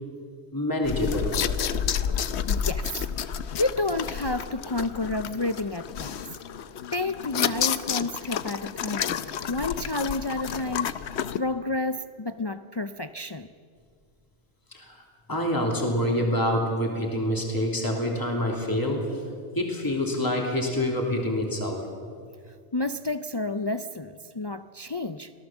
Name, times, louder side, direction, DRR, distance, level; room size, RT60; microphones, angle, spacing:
voice 1, 0.5-1.4 14.7-15.0 15.3-19.2 19.5-21.9, left 1 dB, 15° left, 0 dB, 2.9 m, -26 dB
sound 1, 0.8-11.4, left 8 dB, 70° left, 1.0 m, -30 dB
voice 2, 2.2-3.1 3.6-6.2 6.9-9.2 9.5-10.9 11.4-13.5 22.5-25.3, left 2 dB, 45° left, 10 dB, 0.3 m, -30 dB
25.0 x 17.5 x 7.3 m, 2.1 s
omnidirectional pair, 1.2 m